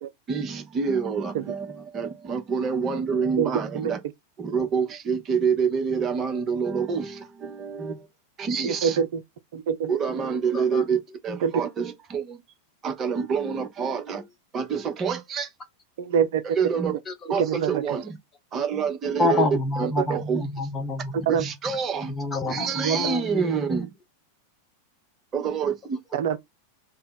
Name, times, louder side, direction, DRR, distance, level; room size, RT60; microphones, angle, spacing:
voice 1, 0.3-4.0 4.4-8.1 8.4-9.0 9.9-12.4 12.8-14.3 14.5-15.5 16.4-16.9 17.3-18.2 18.5-19.5 19.8-20.4 21.3-22.1 22.5-23.9 25.3-26.0, right 6 dB, 25° right, 0.8 m, -27 dB
voice 2, 3.4-3.9 8.6-9.2 9.5-9.9 11.4-11.5 16.0-16.4 17.4-17.8 19.2-19.4 20.0-20.1 21.3-21.4 22.8-23.0 26.1-26.4, right 8 dB, 55° right, 0.3 m, -25 dB
voice 3, 19.2-21.5 22.1-23.6, left 2 dB, 20° left, 0.8 m, -27 dB
3.2 x 2.1 x 3.8 m
figure-of-eight pair, 90°, 0 cm